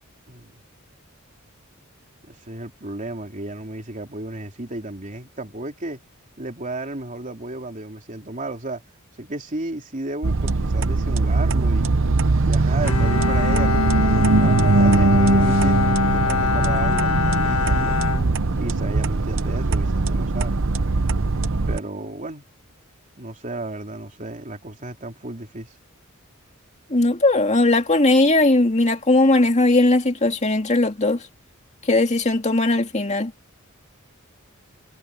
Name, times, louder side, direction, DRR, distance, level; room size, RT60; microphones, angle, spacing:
voice 1, 0.3-0.6 2.2-6.0 6.4-8.8 9.2-11.9 12.4-14.0 14.4-18.0 18.6-20.6 21.7-22.5 23.2-25.8, right 2 dB, 35° right, 3.2 m, -33 dB
sound 1, 10.2-21.8, right 3 dB, 65° right, 0.8 m, -20 dB
Bowed string instrument, 12.8-19.0, left 6 dB, 70° left, 1.7 m, -25 dB
voice 2, 26.9-31.2 31.9-33.3, left 2 dB, 35° left, 2.3 m, -18 dB
head